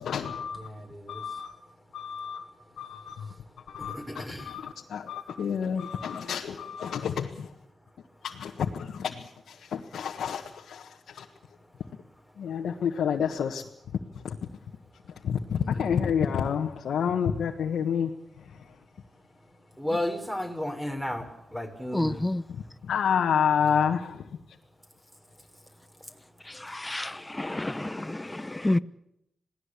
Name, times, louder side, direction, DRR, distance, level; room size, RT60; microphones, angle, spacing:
voice 1, 0.0-0.7 1.1-1.5 1.9-2.4 2.8-3.3 3.7-7.5 8.2-11.3 12.4-13.6 14.1-14.4 15.2-18.1 22.0-22.2 22.5-24.2, left 7 dB, 80° left, 1.5 m, -29 dB
voice 2, 0.5-1.2 3.9-4.5 15.6-16.1 19.8-22.2 23.7-23.8, left 1 dB, 5° right, 5.9 m, -34 dB
voice 3, 21.9-22.4 26.7-28.8, left 1 dB, 20° left, 1.0 m, -29 dB
27.0 x 18.5 x 8.5 m
supercardioid pair, 45°, 0 cm